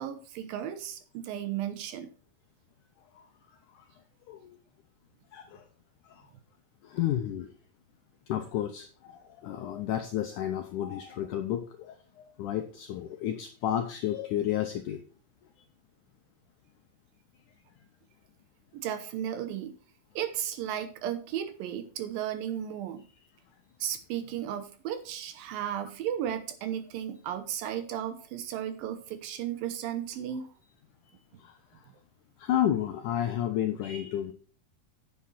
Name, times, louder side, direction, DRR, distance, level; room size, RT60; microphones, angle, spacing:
voice 1, 0.0-2.1 18.7-19.7 20.2-23.1 23.8-30.5, right 10 dB, 75° right, 10 dB, 2.4 m, -34 dB
voice 2, 4.3-4.6 5.3-5.7 6.1-6.3 6.8-7.5 8.3-15.0 31.4-31.9 32.4-34.3, left 11 dB, 80° left, 6 dB, 1.8 m, -32 dB
9.6 x 7.6 x 4.2 m, 0.40 s
omnidirectional pair, 4.5 m